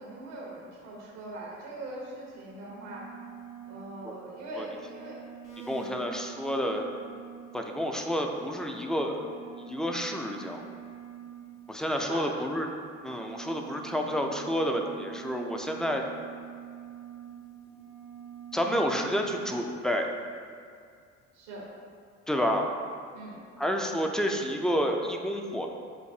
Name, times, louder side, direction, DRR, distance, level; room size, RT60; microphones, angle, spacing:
voice 1, 0.0-3.1 3.6-5.2 5.6-6.2 11.8-12.3 18.7-18.9 21.3-21.7 23.1-23.4, right 2 dB, 85° right, -4 dB, 1.0 m, -41 dB
sound 1, 2.6-12.2 12.7-19.7, right 10 dB, 70° left, 1.3 m, -46 dB
voice 2, 5.7-6.9 7.5-10.6 11.7-12.7 13.0-16.0 18.5-20.1 22.3-22.7 23.6-25.7, equal, ahead, 2 dB, 0.3 m, -29 dB
6.4 x 2.6 x 2.7 m, 2.2 s
hypercardioid pair, 55°, 34 cm